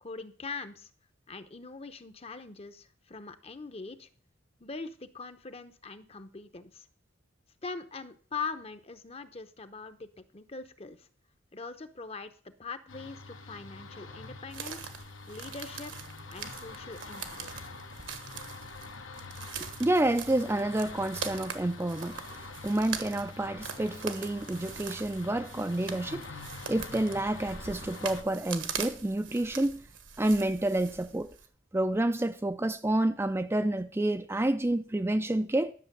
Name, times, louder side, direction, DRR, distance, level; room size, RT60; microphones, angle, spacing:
voice 1, 0.0-0.9 1.3-4.1 4.6-6.9 7.6-11.1 11.5-14.9 15.3-15.9 16.3-17.7, left 4 dB, 30° left, 0.8 m, -42 dB
sound 1, 12.9-28.2, left 3 dB, 80° left, 1.2 m, -45 dB
sound 2, 14.5-31.5, right 7 dB, 70° right, 1.4 m, -42 dB
voice 2, 19.6-26.4 26.7-29.8 30.2-31.3 31.7-35.7, right 1 dB, 15° right, 0.4 m, -29 dB
11.5 x 6.8 x 6.8 m
head